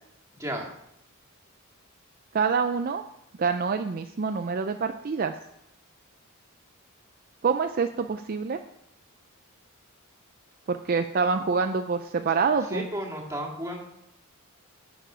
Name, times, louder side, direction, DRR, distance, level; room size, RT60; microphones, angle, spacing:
voice 1, 2.3-3.0 3.4-5.4 7.4-8.6 10.7-12.9, right 5 dB, 45° right, 8 dB, 0.4 m, -26 dB
voice 2, 12.7-13.8, equal, 15° right, -1 dB, 2.0 m, -32 dB
11.0 x 7.1 x 5.0 m, 0.79 s
head